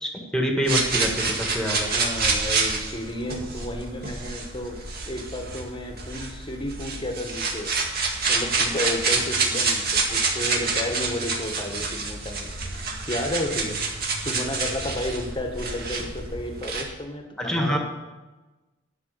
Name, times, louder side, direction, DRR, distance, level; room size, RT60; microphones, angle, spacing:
voice 1, 0.0-1.9 17.4-17.8, equal, 5° left, 1 dB, 1.8 m, -26 dB
sound 1, 0.7-16.8, right 4 dB, 50° right, 2.0 m, -27 dB
voice 2, 1.9-4.8 5.0-7.8 8.3-13.8 14.2-17.8, left 1 dB, 25° left, 4 dB, 1.4 m, -32 dB
11.0 x 6.2 x 8.3 m, 1.2 s
head